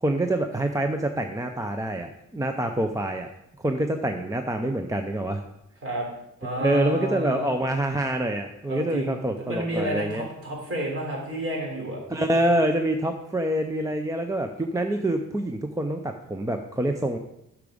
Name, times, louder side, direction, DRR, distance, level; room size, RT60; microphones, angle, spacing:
voice 1, 0.0-3.3 3.6-5.4 6.6-10.3 12.1-17.2, right 1 dB, 10° right, 5 dB, 0.5 m, -26 dB
voice 2, 6.4-7.5 8.7-12.2, right 1 dB, 45° right, -2 dB, 3.6 m, -30 dB
10.5 x 6.1 x 5.0 m, 0.81 s
wide cardioid pair, 175°, 32 cm